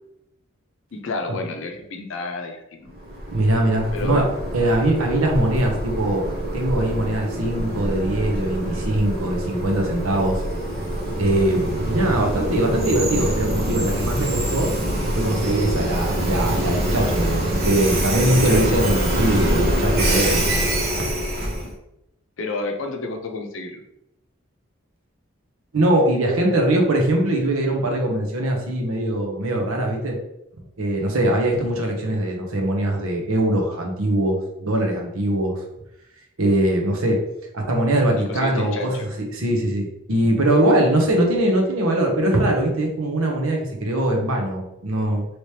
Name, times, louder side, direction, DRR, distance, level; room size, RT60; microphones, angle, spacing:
voice 1, 0.9-2.9 3.9-4.2 18.1-18.6 21.6-21.7 22.4-23.8 38.3-39.1, left 3 dB, 70° left, 3 dB, 0.6 m, -30 dB
Train, 2.9-21.7, right 1 dB, 45° right, 0.9 m, -25 dB
voice 2, 3.3-4.2 4.5-6.3 6.5-10.4 11.2-14.7 15.2-20.6 25.7-30.2 30.8-35.6 36.4-37.2 37.5-45.2, right 1 dB, 90° right, 1 dB, 0.8 m, -21 dB
3.1 x 2.9 x 3.2 m, 0.84 s
head